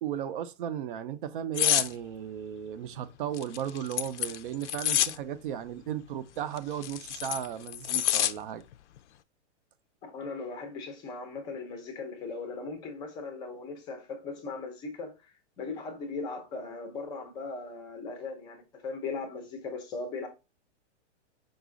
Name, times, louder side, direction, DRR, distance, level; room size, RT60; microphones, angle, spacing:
voice 1, 0.0-8.6, right 10 dB, 45° right, 0.5 m, -35 dB
sound 1, 1.6-1.9 3.3-5.2 6.6-8.3 8.7-9.0, left 12 dB, 75° left, 0.5 m, -27 dB
voice 2, 10.0-20.3, left 4 dB, 10° left, 0.5 m, -38 dB
4.9 x 2.4 x 3.7 m
hypercardioid pair, 155°, 35 cm